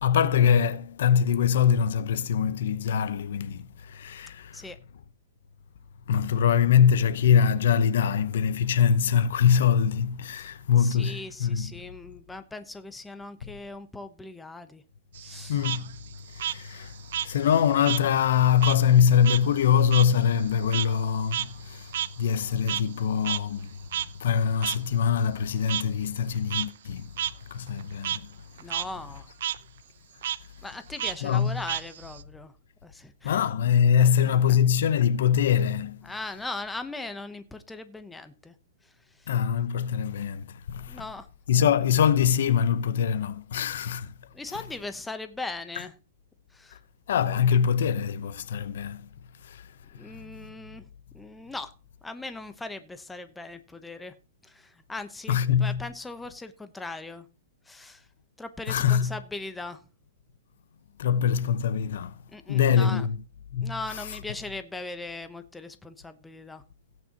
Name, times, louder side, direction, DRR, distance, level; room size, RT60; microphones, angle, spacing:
voice 1, 0.0-4.6 6.1-11.7 15.5-15.9 16.3-16.9 17.2-23.8 24.2-27.1 27.5-28.3 31.2-31.6 33.2-36.0 39.3-41.0 41.5-44.1 47.1-49.1 49.5-49.6 50.4-50.5 55.3-55.8 58.7-59.1 61.0-62.2 62.5-63.2 63.5-63.7, left 8 dB, 65° left, 0.9 m, -23 dB
voice 2, 10.8-14.8 15.2-15.6 28.6-29.3 30.6-32.5 32.8-33.5 34.0-34.6 36.0-38.5 38.8-38.9 39.2-39.3 40.9-41.3 41.5-41.7 44.3-45.9 46.5-46.8 49.9-50.9 51.1-51.7 52.0-54.1 54.4-57.3 57.7-58.1 58.4-59.8 62.3-63.1 63.6-66.6, left 2 dB, 5° left, 0.9 m, -39 dB
Frog, 15.1-18.1 18.4-23.0 23.2-23.4 23.9-24.1 24.6-24.8 25.7-25.8 26.3-26.7 27.2-27.3 27.7-28.2 28.6-28.8 29.1-29.6 30.2-30.4 31.0-32.2, right 11 dB, 60° right, 0.7 m, -31 dB
17.0 x 9.1 x 2.9 m
hypercardioid pair, 160°, 0 cm